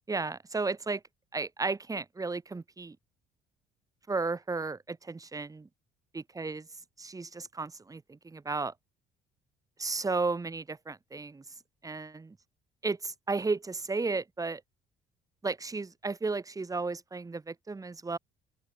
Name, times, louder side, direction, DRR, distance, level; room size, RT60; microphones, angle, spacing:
voice 1, 0.1-1.0 1.3-3.0 4.1-5.7 6.1-6.7 7.0-8.7 9.8-11.4 11.8-12.4 12.8-14.6 15.4-18.2, right 3 dB, 20° right, 5.2 m, -34 dB
open air
cardioid pair, 110°, 17 cm